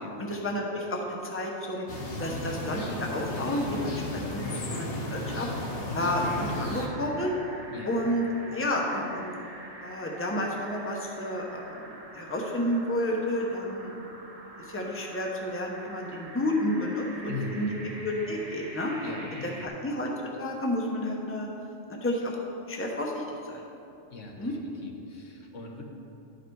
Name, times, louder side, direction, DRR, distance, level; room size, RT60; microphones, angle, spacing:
voice 1, 0.2-1.9 2.2-5.5 5.9-7.3 7.8-9.3 9.8-14.2 14.6-17.7 18.0-18.9 19.6-20.1 20.4-21.5 22.0-22.3 22.7-23.6 24.4-24.5, left 1 dB, 10° left, -1 dB, 0.8 m, -31 dB
sound 1, 1.9-6.9, left 1 dB, 50° left, 1.3 m, -34 dB
sound 2, 5.9-19.7, right 2 dB, 35° right, 0.9 m, -46 dB
voice 2, 7.7-8.1 17.3-17.8 19.0-19.7 24.1-25.8, left 3 dB, 75° left, 1 dB, 1.4 m, -40 dB
11.5 x 4.9 x 4.7 m, 2.8 s
omnidirectional pair, 1.3 m